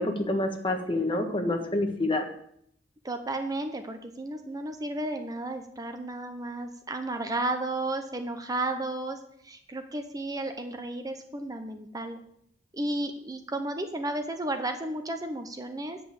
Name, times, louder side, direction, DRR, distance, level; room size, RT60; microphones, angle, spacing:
voice 1, 0.0-2.2, left 1 dB, 30° left, 3 dB, 1.4 m, -27 dB
voice 2, 3.0-9.2 9.4-12.2 12.7-16.0, right 2 dB, 20° right, 6 dB, 0.7 m, -33 dB
9.1 x 5.4 x 7.8 m, 0.70 s
head